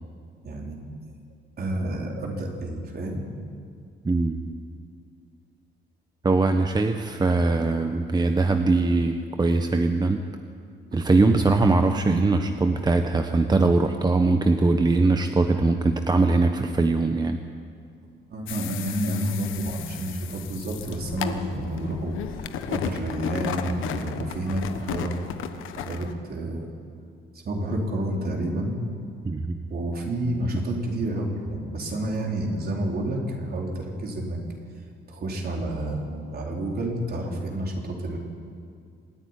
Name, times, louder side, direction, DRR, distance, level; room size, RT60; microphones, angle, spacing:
voice 1, 0.4-0.9 1.6-3.2 10.9-11.1 11.4-11.6 18.3-22.2 22.7-25.2 25.8-26.7 27.4-28.7 29.7-34.4 35.1-38.2, right 1 dB, 50° right, 0 dB, 4.3 m, -29 dB
voice 2, 4.0-4.4 6.2-10.2 10.9-17.4 29.2-29.6, right 3 dB, 20° right, 6 dB, 1.0 m, -21 dB
sound 1, 18.5-26.1, left 9 dB, 85° left, 1.2 m, -34 dB
26.0 x 10.0 x 10.0 m, 2.3 s
cardioid pair, 90°, 20 cm